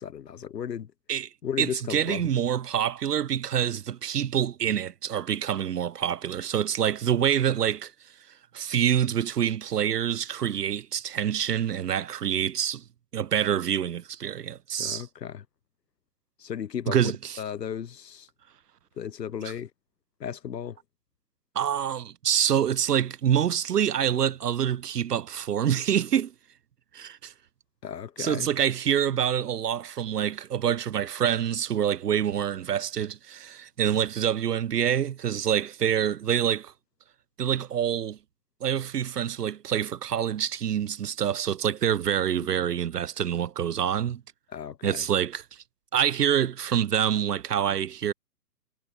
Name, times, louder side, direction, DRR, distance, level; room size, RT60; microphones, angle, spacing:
voice 1, 0.0-0.9 1.4-2.2 7.2-7.3 14.8-15.4 16.4-17.0 17.4-18.3 19.0-19.7 20.2-20.8 27.8-28.5 42.5-42.6 44.5-45.1, left 8 dB, 80° left, 1.4 m, -35 dB
voice 2, 1.6-7.9 8.5-12.8 13.1-15.0 16.9-17.4 21.5-26.3 26.9-27.3 28.2-36.7 37.4-38.2 38.6-44.2 44.8-45.6 45.9-48.1, right 9 dB, 75° right, 1.1 m, -26 dB
hypercardioid pair, 165°, 48 cm